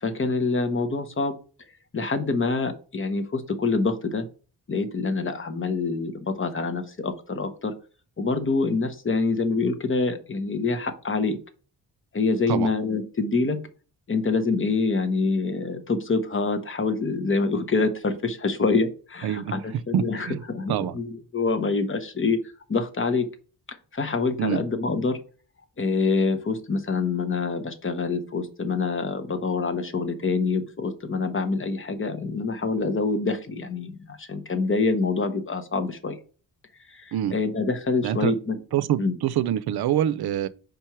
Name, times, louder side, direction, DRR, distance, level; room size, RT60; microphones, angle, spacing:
voice 1, 0.0-1.3 1.9-4.3 4.7-7.7 8.2-11.4 12.1-13.6 14.1-22.4 22.7-23.3 23.7-25.2 25.8-36.2 36.9-38.6 39.0-39.1, left 4 dB, 35° left, 1.0 m, -26 dB
voice 2, 19.2-19.6 19.9-20.4 20.7-20.9 24.4-24.6 37.1-37.3 38.0-38.3 38.7-40.5, right 11 dB, 80° right, 0.5 m, -25 dB
5.2 x 4.5 x 4.7 m
wide cardioid pair, 120°, 38 cm